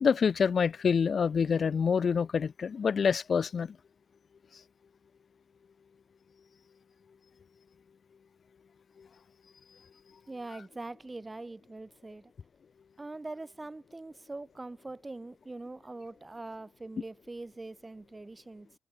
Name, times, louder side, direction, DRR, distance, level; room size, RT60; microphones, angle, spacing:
voice 1, 0.0-3.8, left 6 dB, 40° left, 0.3 m, -26 dB
voice 2, 10.3-12.3 13.0-18.7, right 2 dB, 20° right, 1.1 m, -43 dB
figure-of-eight pair, 45°, 0 cm